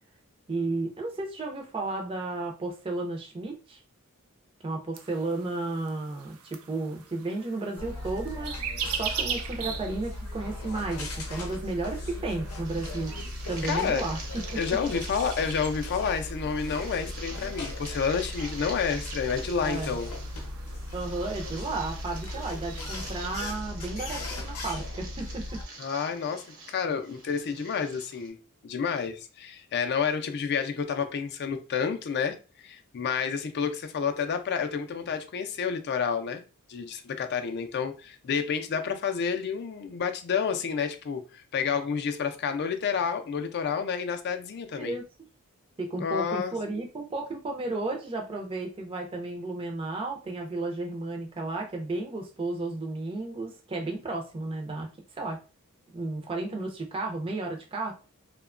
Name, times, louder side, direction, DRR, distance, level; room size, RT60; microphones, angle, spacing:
voice 1, 0.5-3.8 4.6-8.5 8.8-13.1 13.5-14.6 19.6-20.0 20.9-25.6 44.7-45.0 45.8-54.9 55.2-55.4 55.9-57.9, right 2 dB, 25° right, 0.4 m, -33 dB
sound 1, 5.0-23.5, right 7 dB, 85° right, 0.4 m, -42 dB
sound 2, 7.8-25.6, left 1 dB, 90° left, 0.6 m, -37 dB
sound 3, 12.6-28.3, right 3 dB, 70° right, 0.8 m, -46 dB
voice 2, 13.6-14.1 14.5-20.1 25.8-28.4 28.6-36.4 36.7-45.0 46.0-46.5, left 6 dB, 50° left, 0.4 m, -30 dB
2.8 x 2.1 x 2.4 m
head